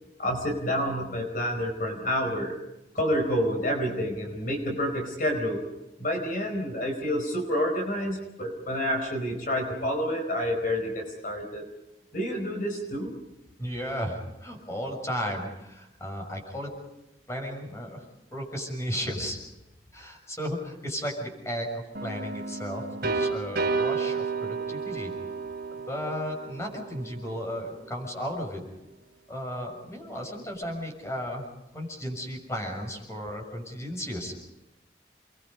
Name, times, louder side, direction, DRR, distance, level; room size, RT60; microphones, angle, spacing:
voice 1, 0.2-2.6 2.9-5.7 6.0-11.7 12.1-13.1, equal, 50° left, 3 dB, 4.6 m, -28 dB
voice 2, 13.6-16.7 17.3-18.0 18.3-19.4 19.9-25.1 25.9-28.6 29.3-31.4 31.7-34.4, equal, 15° left, 1 dB, 6.4 m, -34 dB
sound 1, 21.9-27.6, right 4 dB, 60° right, 3.1 m, -32 dB
29.5 x 22.5 x 5.5 m, 0.95 s
head